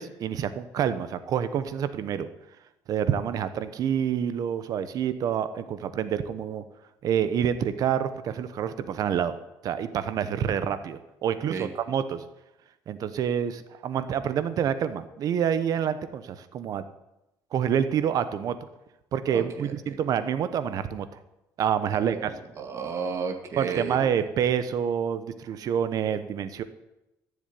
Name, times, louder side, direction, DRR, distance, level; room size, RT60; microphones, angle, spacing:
voice 1, 0.0-2.3 2.9-6.6 7.0-9.4 9.6-12.2 12.9-16.8 17.5-18.6 19.1-21.1 21.6-22.3 23.6-26.6, right 8 dB, 55° right, 12 dB, 1.1 m, -27 dB
voice 2, 19.3-20.0 21.9-24.1, right 5 dB, 40° right, 5 dB, 2.1 m, -34 dB
14.0 x 7.3 x 9.8 m, 0.94 s
cardioid pair, 130°, 7 cm